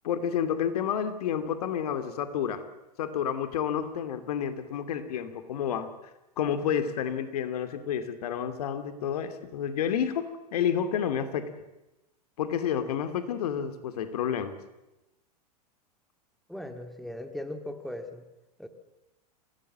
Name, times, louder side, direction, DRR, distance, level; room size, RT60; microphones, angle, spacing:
voice 1, 0.0-2.6 3.0-5.9 6.4-11.5 12.4-14.5, left 8 dB, 65° left, 10 dB, 2.5 m, -30 dB
voice 2, 16.5-18.2 18.6-18.7, left 1 dB, ahead, 8 dB, 2.1 m, -38 dB
25.5 x 18.5 x 7.5 m, 0.97 s
hypercardioid pair, 95°, 21 cm